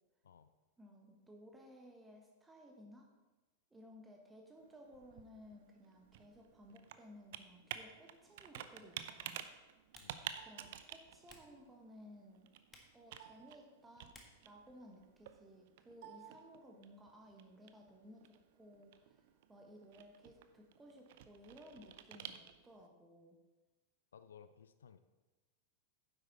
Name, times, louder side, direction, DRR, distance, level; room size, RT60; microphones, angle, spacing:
voice 1, 0.8-3.1 3.7-9.5 10.4-12.5 12.9-14.1 14.4-23.4, equal, 10° right, 1 dB, 1.4 m, -58 dB
Computer keyboard, 4.6-22.9, right 10 dB, 55° right, 0.5 m, -52 dB
Typing, 8.1-15.6, left 2 dB, 15° left, 1.5 m, -68 dB
voice 2, 10.0-10.3 24.1-25.0, left 7 dB, 65° left, 12 dB, 0.4 m, -59 dB
9.7 x 7.8 x 4.2 m, 1.1 s
figure-of-eight pair, 90°, 0 cm